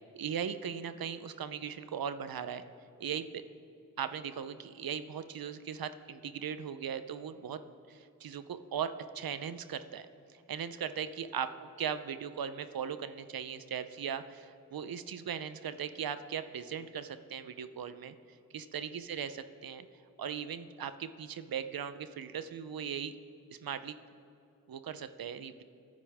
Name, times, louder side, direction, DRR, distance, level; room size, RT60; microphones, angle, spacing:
voice 1, 0.1-2.6 3.0-3.4 4.0-7.6 7.9-10.1 10.5-18.1 18.5-19.8 20.2-23.1 23.5-24.0 24.7-25.6, right 8 dB, 85° right, 11 dB, 0.7 m, -38 dB
28.5 x 10.5 x 3.5 m, 2.7 s
cardioid pair, 50°, 35 cm